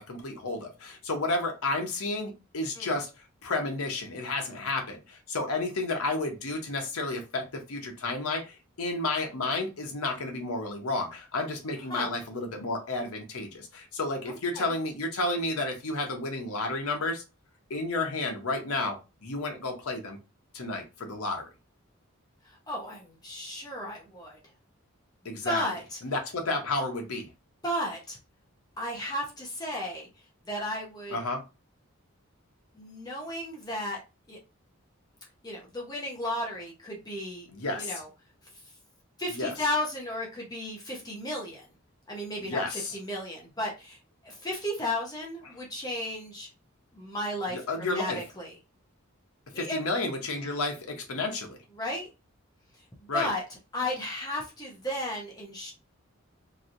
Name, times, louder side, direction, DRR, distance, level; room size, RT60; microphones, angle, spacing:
voice 1, 0.0-3.1 3.4-17.2 17.7-20.2 20.5-21.5 25.2-25.6 26.0-27.3 31.1-31.4 37.5-37.9 39.3-39.5 42.4-43.0 45.4-45.5 47.5-48.2 49.6-51.6 53.1-53.3, left 2 dB, 85° left, 3 dB, 0.9 m, -31 dB
voice 2, 14.3-14.7 22.4-24.4 25.4-26.0 27.6-28.2 28.8-30.1 30.5-31.2 32.7-34.0 34.3-34.4 35.4-37.5 37.8-38.1 39.2-41.7 42.1-44.0 44.2-46.5 46.9-48.6 49.5-49.8 51.8-52.1 53.1-53.4 53.7-55.7, left 1 dB, 20° left, -2 dB, 0.7 m, -34 dB
3.1 x 2.7 x 2.6 m, 0.28 s
head